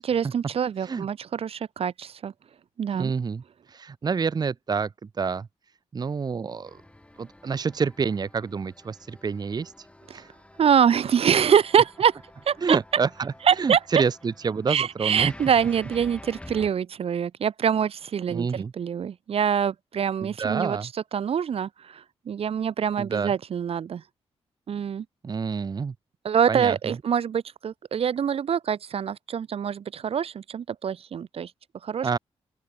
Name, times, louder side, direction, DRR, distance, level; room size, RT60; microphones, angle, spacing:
voice 1, 0.0-2.3 2.8-3.1 10.6-12.2 12.5-12.8 13.4-13.8 14.7-20.8 21.1-24.0 24.7-25.0 26.2-31.5 31.8-32.1, right 8 dB, 60° right, 1.1 m, -25 dB
voice 2, 2.9-3.4 3.7-4.9 5.2-5.5 5.9-6.8 7.2-9.7 10.1-10.3 12.6-13.3 13.6-15.3 18.3-18.7 20.2-20.9 23.0-23.3 25.2-25.9 26.5-26.9 32.0-32.2, right 5 dB, 35° right, 0.9 m, -27 dB
sound 1, 6.7-16.7, left 1 dB, 10° left, 6.1 m, -48 dB
open air
cardioid pair, 100°, 11 cm